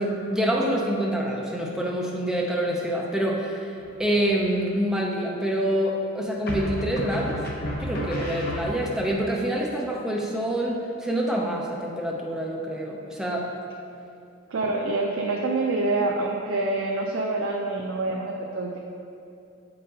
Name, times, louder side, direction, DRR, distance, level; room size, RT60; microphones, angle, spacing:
voice 1, 0.0-3.7 4.0-7.4 7.8-13.5, right 1 dB, 5° right, -2 dB, 0.6 m, -26 dB
sound 1, 3.8-4.4 6.5-9.1, left 1 dB, 50° left, 0.8 m, -32 dB
voice 2, 14.5-18.8, right 2 dB, 75° right, -1 dB, 0.5 m, -26 dB
7.4 x 5.3 x 2.8 m, 2.6 s
head